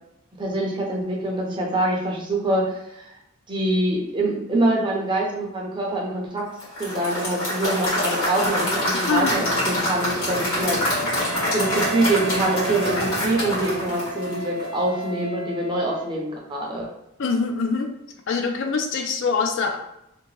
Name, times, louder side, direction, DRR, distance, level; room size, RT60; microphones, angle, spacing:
voice 1, 0.4-3.2 3.5-6.4 6.8-11.2 11.5-16.9, right 1 dB, 20° right, -2 dB, 0.5 m, -25 dB
Applause / Crowd, 6.6-14.8, left 1 dB, 80° left, 1.3 m, -26 dB
Gunshot gunfire / Fireworks, 8.4-14.7, left 1 dB, 15° left, 0.6 m, -36 dB
voice 2, 9.1-9.4 17.2-17.9 18.3-19.8, left 4 dB, 60° left, 4 dB, 0.3 m, -24 dB
Wind instrument woodwind instrument, 11.2-16.2, right 3 dB, 75° right, 0.5 m, -34 dB
2.8 x 2.1 x 3.0 m, 0.85 s
head